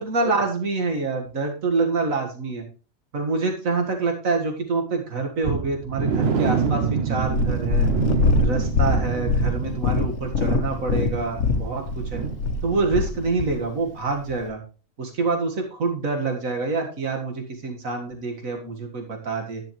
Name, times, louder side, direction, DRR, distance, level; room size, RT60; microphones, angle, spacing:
voice 1, 0.0-2.6 3.1-7.9 8.4-11.9 12.1-12.2 12.6-14.6 15.0-19.6, right 3 dB, 90° right, 3 dB, 2.3 m, -26 dB
sound 1, 5.4-13.2 13.5-13.7 14.1-14.2, right 6 dB, 55° right, 1.0 m, -27 dB
Purr, 7.2-13.6 14.3-14.4, left 3 dB, 65° left, 1.2 m, -23 dB
10.5 x 10.5 x 3.2 m, 0.35 s
omnidirectional pair, 1.4 m